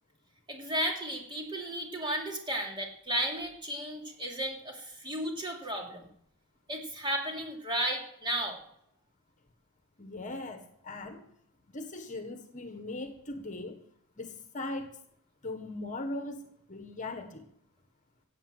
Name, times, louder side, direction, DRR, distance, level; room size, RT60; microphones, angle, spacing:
voice 1, 0.5-6.0 6.7-8.6, right 1 dB, 20° right, 1 dB, 2.9 m, -34 dB
voice 2, 10.0-11.3 11.7-13.8 14.2-15.0 15.4-17.4, left 2 dB, 35° left, 7 dB, 1.4 m, -39 dB
16.0 x 8.3 x 7.6 m, 0.70 s
head